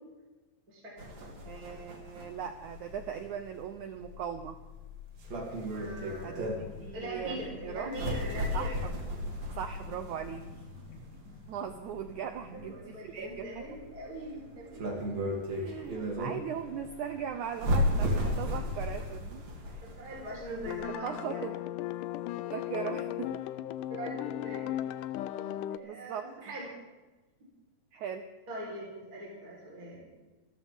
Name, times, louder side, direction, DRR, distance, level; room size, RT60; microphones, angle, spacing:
voice 1, 0.7-1.3 5.7-6.5 6.9-8.7 12.5-14.9 19.8-21.5 22.9-23.0 23.9-24.8 25.7-26.7 28.5-30.1, right 1 dB, 25° right, -4 dB, 4.5 m, -41 dB
sound 1, 1.0-20.8, left 1 dB, 45° right, 3.8 m, -35 dB
voice 2, 1.5-4.6 6.2-7.4 7.6-7.9 8.5-8.9 9.6-10.5 11.5-13.7 15.6-19.5 19.7-19.9 20.9-21.5 22.5-23.4 25.8-26.5 27.9-28.3, right 8 dB, 80° right, 8 dB, 1.7 m, -39 dB
sound 2, 5.8-12.8, left 2 dB, 75° left, 5.2 m, -52 dB
sound 3, 20.7-25.8, left 13 dB, 90° left, 1.8 m, -36 dB
27.5 x 13.5 x 3.6 m, 1.2 s
omnidirectional pair, 4.4 m